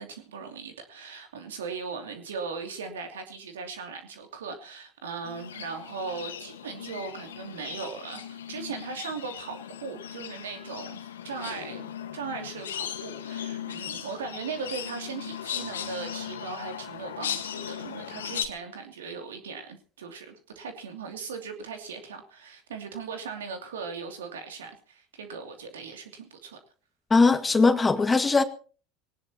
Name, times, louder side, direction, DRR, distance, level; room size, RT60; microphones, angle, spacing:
voice 1, 0.0-26.6, right 5 dB, 80° right, 2.8 m, -38 dB
sound 1, 5.2-18.5, left 9 dB, 80° left, 1.6 m, -38 dB
voice 2, 27.1-28.4, left 3 dB, 20° left, 1.9 m, -20 dB
21.0 x 18.5 x 3.0 m
hypercardioid pair, 75°, 0 cm